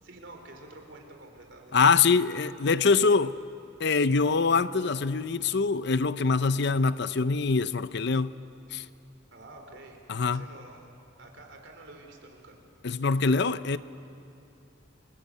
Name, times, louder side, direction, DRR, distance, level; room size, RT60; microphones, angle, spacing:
voice 1, 0.0-2.6 9.3-10.0 10.2-10.9 11.2-12.6, right 2 dB, 65° right, 4.6 m, -49 dB
voice 2, 1.7-3.4 3.8-8.4 8.7-8.8 10.1-10.4 12.8-13.8, left 4 dB, 60° left, 0.6 m, -24 dB
29.5 x 22.5 x 8.4 m
head